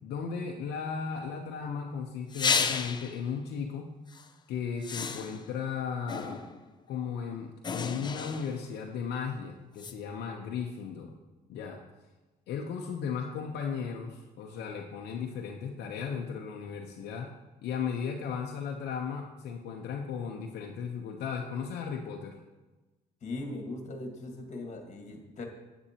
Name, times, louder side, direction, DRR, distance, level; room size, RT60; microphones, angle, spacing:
voice 1, 0.0-3.9 4.5-6.4 6.9-11.1 11.5-11.8 12.5-17.3 17.6-22.4, left 6 dB, 75° left, 0 dB, 0.9 m, -36 dB
sound 1, 2.3-3.2 4.1-4.3 4.8-5.6 6.1-6.7 7.6-8.7 9.8-9.9, left 5 dB, 25° left, 0.6 m, -32 dB
voice 2, 23.2-25.4, left 2 dB, 45° left, 3 dB, 1.7 m, -39 dB
9.9 x 8.0 x 2.9 m, 1.2 s
cardioid pair, 110°, 17 cm